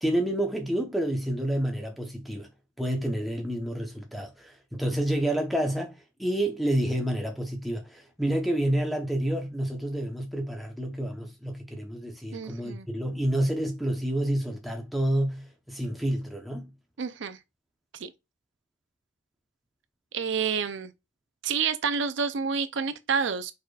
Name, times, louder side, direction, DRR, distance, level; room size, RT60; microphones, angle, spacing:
voice 1, 0.0-2.5 2.8-16.7, right 1 dB, ahead, 0.9 m, -29 dB
voice 2, 12.3-12.9 17.0-17.4 17.9-18.1 20.1-20.9 21.4-23.5, right 6 dB, 65° right, 0.5 m, -29 dB
4.9 x 4.4 x 2.4 m
head